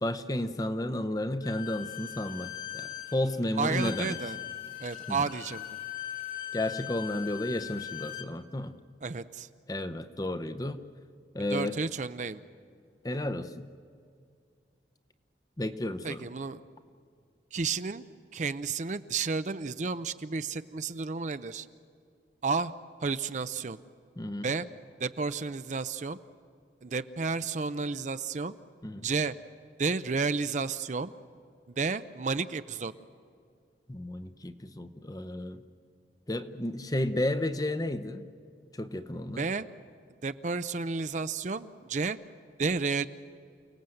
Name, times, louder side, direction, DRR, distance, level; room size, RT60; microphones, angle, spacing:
voice 1, 0.0-4.2 5.1-5.2 6.5-8.7 9.7-10.8 11.3-11.8 13.0-13.6 15.6-16.2 24.2-24.5 28.8-29.1 33.9-35.6 36.3-38.3 38.7-39.5, left 1 dB, 20° left, 10 dB, 0.7 m, -32 dB
Bowed string instrument, 1.4-8.3, left 11 dB, 50° left, 2.0 m, -40 dB
voice 2, 3.6-4.4 4.8-5.7 9.0-9.5 11.5-12.4 16.0-16.6 17.5-18.0 18.3-21.7 22.4-22.7 23.0-23.8 24.4-24.7 25.0-26.2 26.8-28.5 29.0-29.3 29.8-31.1 31.7-32.9 39.3-39.6 40.2-42.2 42.6-43.1, right 4 dB, 40° right, 12 dB, 0.5 m, -31 dB
29.5 x 18.0 x 7.8 m, 2.4 s
head